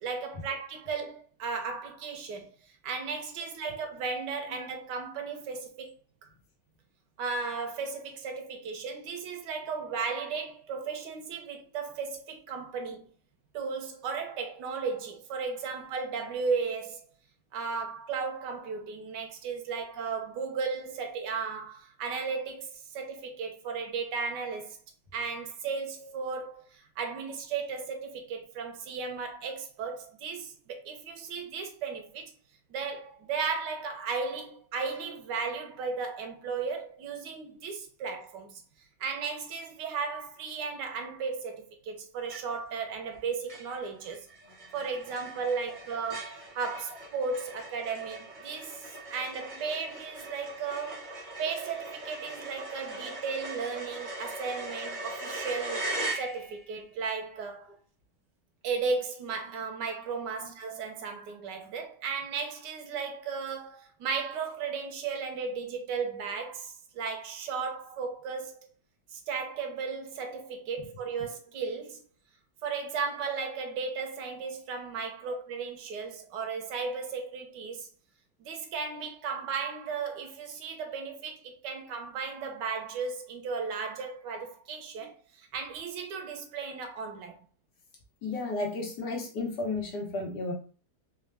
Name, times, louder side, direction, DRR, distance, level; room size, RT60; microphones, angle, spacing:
voice 1, 0.0-5.9 6.2-6.3 7.2-13.0 13.5-17.1 17.5-24.8 25.1-32.3 32.7-38.6 39.0-44.3 44.7-51.1 51.4-57.8 58.6-68.6 69.1-72.0 72.6-77.9 78.4-87.4, right 5 dB, 85° right, 1.4 m, -35 dB
sound 1, 42.3-42.8 43.1-43.2 43.5-56.8, right 2 dB, 35° right, 0.9 m, -40 dB
voice 2, 88.2-90.5, left 3 dB, 75° left, 1.7 m, -33 dB
4.1 x 2.3 x 3.3 m
omnidirectional pair, 1.8 m